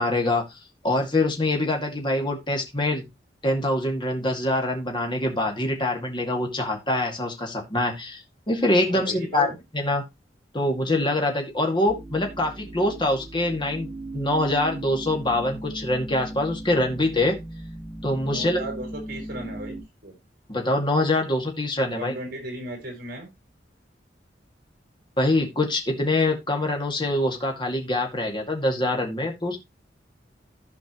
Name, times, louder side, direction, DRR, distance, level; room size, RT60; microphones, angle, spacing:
voice 1, 0.0-3.0 3.4-9.5 9.7-10.0 10.5-17.4 18.0-18.6 20.5-22.1 25.2-29.6, left 1 dB, 30° left, 2 dB, 2.3 m, -24 dB
voice 2, 8.8-9.6 18.2-20.2 21.9-23.3, right 1 dB, 55° right, 2 dB, 5.2 m, -36 dB
sound 1, 11.9-19.8, right 1 dB, 25° right, 4.5 m, -37 dB
15.0 x 5.1 x 3.1 m, 0.22 s
head